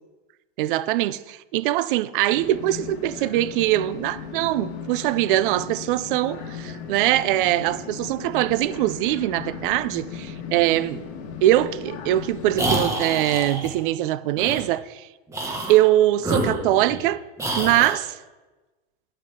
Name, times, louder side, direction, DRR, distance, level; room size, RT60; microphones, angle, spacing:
voice 1, 0.6-11.1 11.4-15.1 15.7-17.2 17.6-18.2, right 14 dB, 60° right, 0.6 m, -22 dB
sound 1, 2.3-12.9, left 6 dB, 45° left, 2.1 m, -37 dB
sound 2, 12.5-13.7 14.4-14.6 15.3-15.8 16.2-17.1 17.4-18.0, right 1 dB, 10° right, 1.5 m, -27 dB
11.0 x 10.5 x 3.8 m
supercardioid pair, 150°, 30 cm